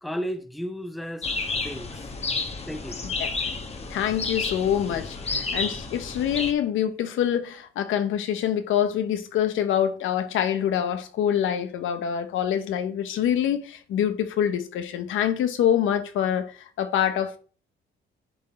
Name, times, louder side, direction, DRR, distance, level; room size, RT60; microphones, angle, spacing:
voice 1, 0.0-1.3 1.5-2.1 2.7-3.0, equal, ahead, 0.6 m, -33 dB
sound 1, 1.2-6.5, left 4 dB, 30° left, 1.2 m, -31 dB
voice 2, 3.0-3.5 3.9-17.4, left 9 dB, 80° left, 1.0 m, -25 dB
10.5 x 3.9 x 4.3 m
cardioid pair, 90°, 20 cm